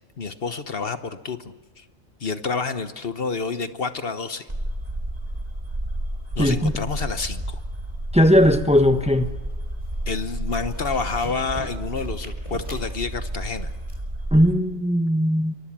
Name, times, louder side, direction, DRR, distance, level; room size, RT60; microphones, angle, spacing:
voice 1, 0.2-1.8 2.2-4.4 6.3-7.6 10.1-13.7, left 4 dB, 55° left, 1.3 m, -29 dB
sound 1, 4.5-14.5, right 1 dB, 35° right, 3.3 m, -31 dB
voice 2, 6.4-6.8 8.1-9.3 14.3-15.5, equal, 5° right, 1.1 m, -18 dB
sound 2, 8.9-9.5 9.8-10.1 10.4-14.0, left 1 dB, 25° left, 4.6 m, -43 dB
28.0 x 24.5 x 7.5 m
omnidirectional pair, 1.2 m